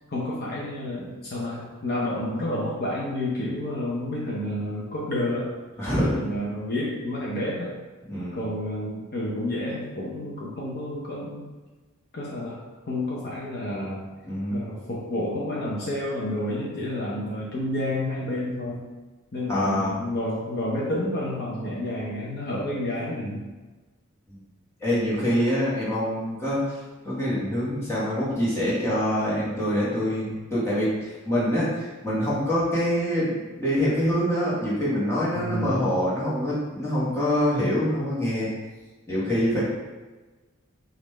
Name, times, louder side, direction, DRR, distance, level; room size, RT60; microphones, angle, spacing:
voice 1, 0.1-5.5 6.0-7.7 8.3-11.5 12.1-12.6 12.9-14.0 14.5-18.9 19.3-23.4 35.3-35.8, left 1 dB, 50° left, -5 dB, 0.7 m, -30 dB
voice 2, 5.8-6.2 8.1-8.4 14.2-14.6 19.5-20.0 24.3-24.4 24.8-26.6 27.0-38.5 39.1-39.6, equal, 15° left, -9 dB, 1.3 m, -25 dB
5.2 x 2.5 x 3.2 m, 1.2 s
head